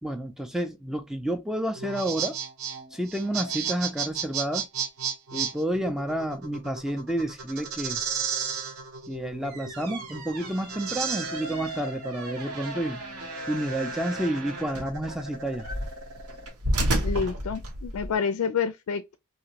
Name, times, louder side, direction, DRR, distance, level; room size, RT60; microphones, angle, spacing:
voice 1, 0.0-2.4 2.9-4.7 5.3-8.0 9.1-13.0 13.5-15.7, right 1 dB, ahead, 0.3 m, -30 dB
sound 1, 1.7-16.5, right 6 dB, 65° right, 0.8 m, -34 dB
sound 2, 9.3-18.1, right 1 dB, 85° right, 1.1 m, -33 dB
voice 2, 17.0-19.2, left 6 dB, 75° left, 0.3 m, -28 dB
2.9 x 2.5 x 2.8 m
head